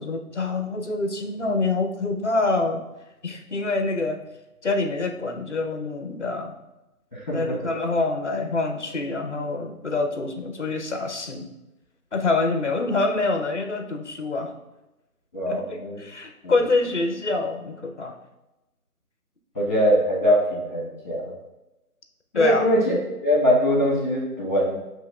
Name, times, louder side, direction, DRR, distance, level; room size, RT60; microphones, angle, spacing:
voice 1, 0.0-2.8 3.2-4.2 4.6-6.5 7.3-11.5 12.1-14.5 15.5-15.6 16.0-18.2 22.3-22.7, left 3 dB, 50° left, 4 dB, 0.5 m, -26 dB
voice 2, 15.3-16.0 16.4-16.5 19.5-21.3 22.3-22.9 23.2-24.8, equal, 30° left, -4 dB, 1.4 m, -22 dB
7.4 x 3.0 x 2.3 m, 0.97 s
figure-of-eight pair, 175°, 46 cm